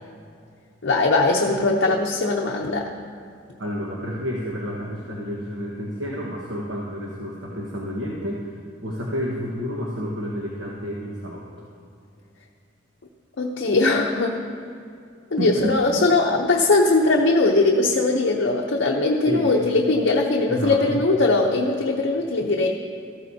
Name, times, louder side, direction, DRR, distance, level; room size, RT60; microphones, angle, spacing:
voice 1, 0.8-2.9 13.4-14.3 15.3-22.7, left 2 dB, 65° left, 0 dB, 0.7 m, -20 dB
voice 2, 3.6-11.4 15.4-15.8 19.3-19.5 20.5-21.0, equal, 75° right, -3 dB, 1.4 m, -30 dB
14.0 x 14.0 x 2.8 m, 2.3 s
head